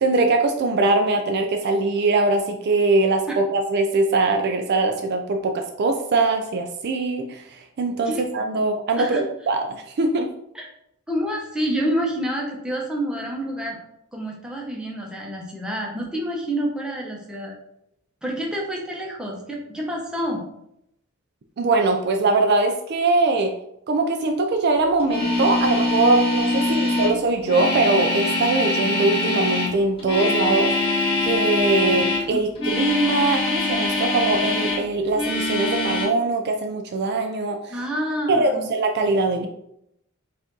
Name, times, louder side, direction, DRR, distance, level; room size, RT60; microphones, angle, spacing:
voice 1, 0.0-10.3 21.6-23.5 23.9-30.7 31.2-37.8 38.3-39.5, right 3 dB, 50° right, 4 dB, 0.4 m, -22 dB
voice 2, 11.1-13.8 14.1-17.6 18.2-20.4 26.6-27.0 32.3-32.4 37.7-38.7, equal, 5° right, -2 dB, 0.8 m, -28 dB
sound 1, 25.0-32.3 32.5-34.8 35.1-36.1, left 2 dB, 25° left, 1.5 m, -23 dB
4.9 x 2.5 x 3.8 m, 0.78 s
head